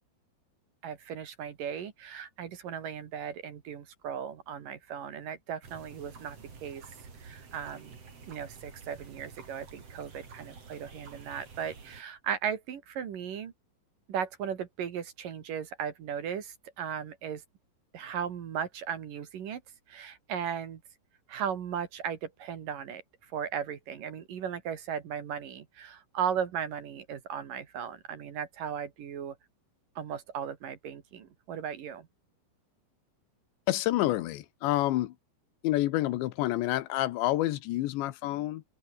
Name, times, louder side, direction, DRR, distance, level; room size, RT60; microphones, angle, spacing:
voice 1, 0.8-6.9 7.2-8.0 8.3-13.5 14.1-17.4 17.9-19.6 19.9-20.8 21.3-29.4 30.0-32.1, right 8 dB, 55° right, 3.2 m, -36 dB
sound 1, 5.6-12.0, right 5 dB, 35° right, 4.5 m, -50 dB
voice 2, 33.7-35.1 35.6-38.6, left 16 dB, 80° left, 3.4 m, -28 dB
open air
omnidirectional pair, 5.1 m